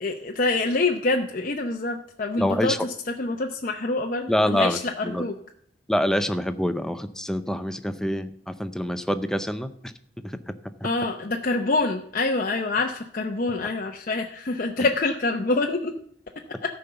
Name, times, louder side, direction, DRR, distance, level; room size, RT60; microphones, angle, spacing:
voice 1, 0.0-5.3 10.8-15.9, left 3 dB, 50° left, 2 dB, 0.7 m, -26 dB
voice 2, 2.4-2.9 4.3-5.2 5.9-10.9, equal, 5° left, 10 dB, 0.5 m, -26 dB
14.0 x 5.2 x 6.9 m, 0.67 s
head